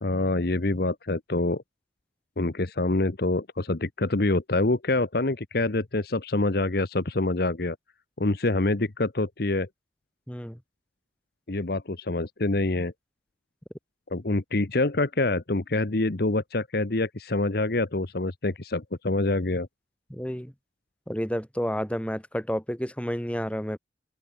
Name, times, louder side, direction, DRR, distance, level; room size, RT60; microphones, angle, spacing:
voice 1, 0.0-1.6 2.4-7.8 8.2-9.7 11.5-12.9 14.1-19.7, left 2 dB, 60° left, 1.2 m, -26 dB
voice 2, 10.3-10.6 20.1-20.5 21.1-23.8, equal, 5° left, 4.8 m, -30 dB
open air
head